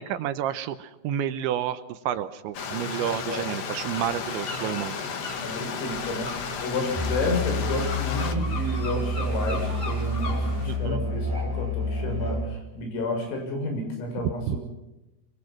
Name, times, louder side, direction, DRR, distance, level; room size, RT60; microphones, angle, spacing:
voice 1, 0.0-5.0 10.7-11.0 14.5-14.6, right 10 dB, 75° right, 11 dB, 3.0 m, -30 dB
Stream, 2.5-8.3, left 6 dB, 60° left, 1.7 m, -33 dB
sound 1, 3.9-10.8, left 3 dB, 30° left, 6.3 m, -40 dB
voice 2, 5.4-14.6, left 2 dB, 85° left, 4 dB, 9.4 m, -31 dB
Musical instrument, 6.9-12.5, left 1 dB, 5° left, 4.6 m, -28 dB
25.0 x 25.0 x 6.0 m, 0.96 s
omnidirectional pair, 5.9 m